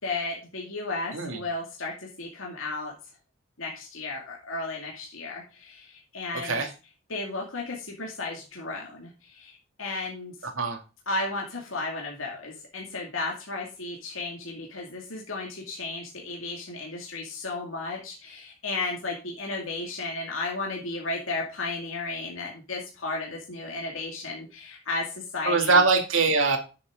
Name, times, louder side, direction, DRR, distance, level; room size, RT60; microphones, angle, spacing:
voice 1, 0.0-2.9 3.6-6.6 7.1-10.5 11.1-25.8, left 3 dB, 85° left, -1 dB, 2.3 m, -34 dB
voice 2, 25.5-26.6, right 4 dB, 80° right, 4 dB, 2.3 m, -22 dB
10.5 x 7.3 x 3.8 m, 0.32 s
head